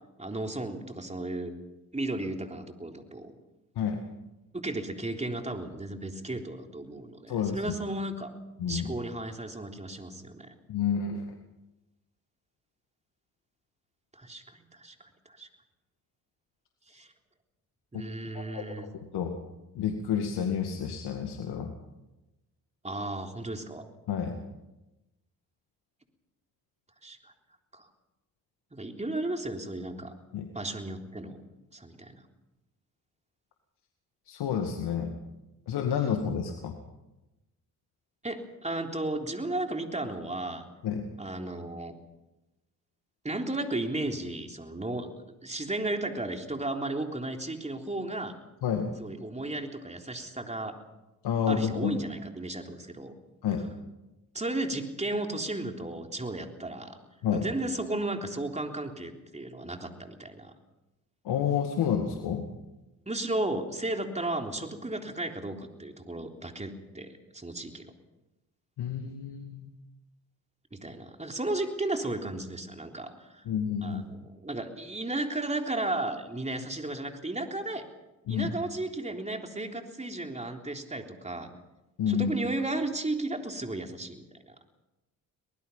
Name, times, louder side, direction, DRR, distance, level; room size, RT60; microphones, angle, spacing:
voice 1, 0.2-1.5 1.9-3.3 4.5-8.3 8.7-10.5 14.1-15.0 15.3-15.5 16.9-17.1 17.9-18.9 22.8-23.8 27.0-27.3 27.7-27.9 28.7-30.1 30.5-31.4 31.7-32.2 38.2-40.6 41.2-41.9 43.2-45.1 45.4-48.3 49.0-50.8 51.5-53.1 54.3-57.0 57.3-60.5 63.1-67.9 70.7-73.4 73.8-77.9 78.3-81.5 82.1-84.2, right 2 dB, 15° right, 3 dB, 3.6 m, -34 dB
voice 2, 7.3-7.6 8.6-8.9 10.7-11.4 17.9-18.0 18.3-19.4 19.7-21.7 24.1-24.4 30.3-30.5 34.3-35.2 35.7-36.8 40.8-41.1 48.6-48.9 51.2-52.0 53.4-53.7 57.2-57.4 61.2-62.5 68.8-69.7 73.5-74.0 78.3-78.5 82.0-82.3, left 7 dB, 70° left, 4 dB, 2.2 m, -30 dB
24.0 x 19.5 x 5.7 m, 0.98 s
hypercardioid pair, 50°, 41 cm